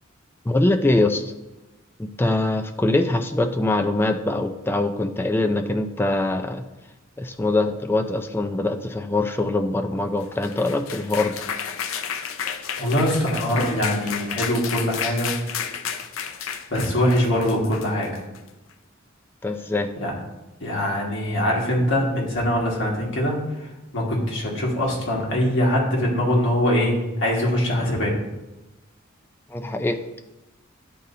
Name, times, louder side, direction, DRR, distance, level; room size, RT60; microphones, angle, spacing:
voice 1, 0.5-1.3 2.0-6.6 7.2-11.4 19.4-19.9 29.5-30.0, left 2 dB, 10° left, 6 dB, 0.4 m, -23 dB
sound 1, 10.2-18.5, left 7 dB, 80° left, 0.5 m, -32 dB
voice 2, 12.8-15.3 16.7-18.1 20.0-20.1 20.6-23.4 23.9-28.1, equal, 65° left, -3 dB, 1.7 m, -22 dB
10.0 x 4.0 x 2.7 m, 1.0 s
head